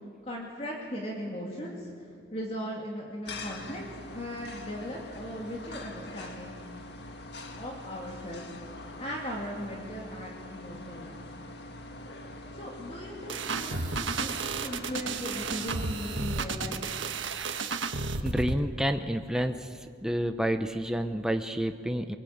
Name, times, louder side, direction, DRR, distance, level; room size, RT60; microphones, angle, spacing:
voice 1, 0.2-3.8 4.1-6.6 7.5-8.4 9.0-11.2 12.5-16.8, equal, 35° left, -2 dB, 2.7 m, -38 dB
sound 1, 3.3-16.2, left 2 dB, 60° left, 2.1 m, -44 dB
sound 2, 13.3-18.6, right 4 dB, 90° right, 1.4 m, -32 dB
voice 2, 18.2-19.7 20.0-22.2, equal, 5° right, 6 dB, 0.7 m, -29 dB
23.0 x 23.0 x 8.7 m, 2.2 s
head